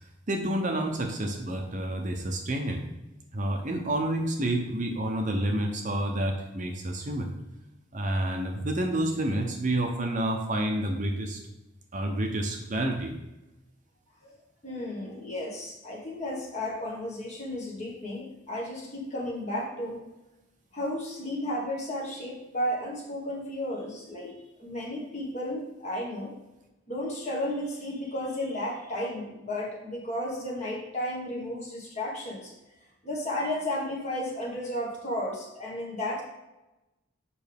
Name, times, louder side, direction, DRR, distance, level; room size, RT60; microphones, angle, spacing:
voice 1, 0.3-2.8 3.3-7.3 7.9-11.4 11.9-13.1, right 1 dB, 40° right, 2 dB, 0.7 m, -29 dB
voice 2, 14.6-20.0 20.7-26.3 26.9-32.5 33.0-36.2, left 1 dB, 35° left, -3 dB, 1.6 m, -33 dB
7.0 x 5.3 x 3.5 m, 1.0 s
head